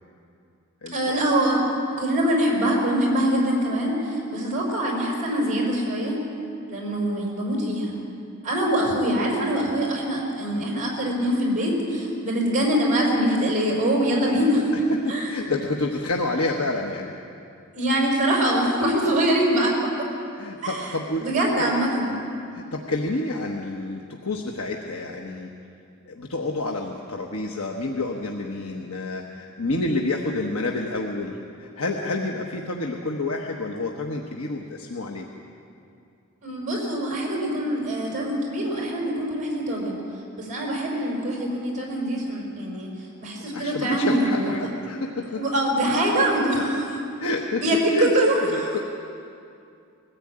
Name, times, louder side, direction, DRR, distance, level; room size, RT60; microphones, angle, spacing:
voice 1, 0.9-1.6 2.0-6.2 6.7-8.0 8.4-14.7 15.1-15.3 17.7-19.7 20.6-20.8 21.2-22.1 36.4-40.0 40.4-42.9 43.2-44.5 45.3-46.8 47.6-48.8, right 1 dB, 35° right, -2 dB, 5.1 m, -23 dB
voice 2, 14.7-17.1 20.3-21.7 22.0-22.2 22.5-25.5 26.1-35.2 43.5-45.4 47.2-47.6 47.9-48.1 48.4-48.8, left 2 dB, 75° left, 1 dB, 1.3 m, -29 dB
21.0 x 14.5 x 8.8 m, 2.5 s
head